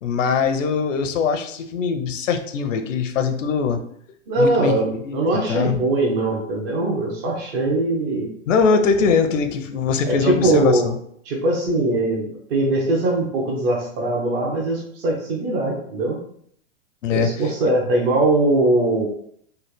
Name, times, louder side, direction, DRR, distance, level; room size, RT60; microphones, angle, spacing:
voice 1, 0.0-3.8 4.3-4.8 5.0-5.8 8.5-11.0 17.0-17.3, left 5 dB, 85° left, 8 dB, 0.6 m, -21 dB
voice 2, 4.3-8.3 10.1-10.9 11.2-16.2 17.1-19.1, right 2 dB, 50° right, -1 dB, 0.8 m, -21 dB
3.2 x 2.2 x 3.2 m, 0.67 s
hypercardioid pair, 120°, 37 cm